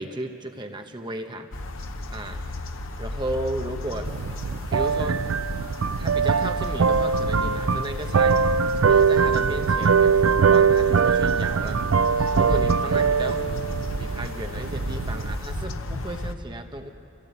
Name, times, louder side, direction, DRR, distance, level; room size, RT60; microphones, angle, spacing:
voice 1, 0.0-1.5 2.1-2.5 3.0-4.2 4.7-5.3 6.0-8.4 8.8-11.9 12.3-13.5 14.0-16.9, right 1 dB, 20° right, 5 dB, 0.8 m, -34 dB
sound 1, 1.5-16.3, left 1 dB, 65° left, 1.0 m, -34 dB
sound 2, 4.0-15.6, right 6 dB, 65° right, 0.4 m, -22 dB
27.5 x 16.5 x 8.1 m, 2.7 s
head